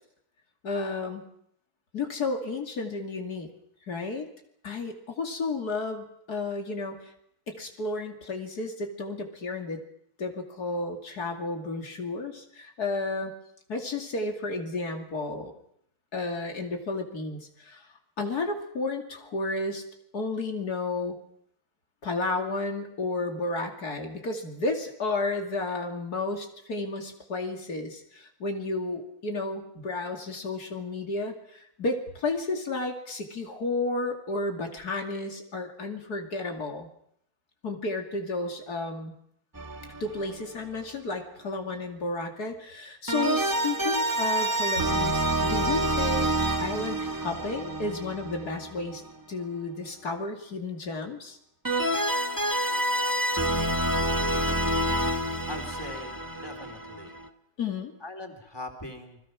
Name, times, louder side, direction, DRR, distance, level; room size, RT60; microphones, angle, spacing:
voice 1, 0.6-1.3 1.9-3.5 3.9-4.3 4.6-7.1 7.5-9.8 10.2-13.3 13.7-15.6 16.1-17.9 18.2-19.8 20.1-21.2 22.0-36.9 37.6-39.2 40.0-46.3 46.6-49.0 49.3-51.4 57.6-58.0, left 3 dB, 90° left, 3 dB, 3.1 m, -32 dB
sound 1, 39.5-40.5 43.1-49.1 51.6-57.3, right 1 dB, 15° right, 1.4 m, -28 dB
voice 2, 55.5-57.1 58.0-59.2, left 1 dB, 15° left, 2 dB, 3.1 m, -41 dB
29.0 x 21.5 x 6.2 m, 0.71 s
omnidirectional pair, 1.6 m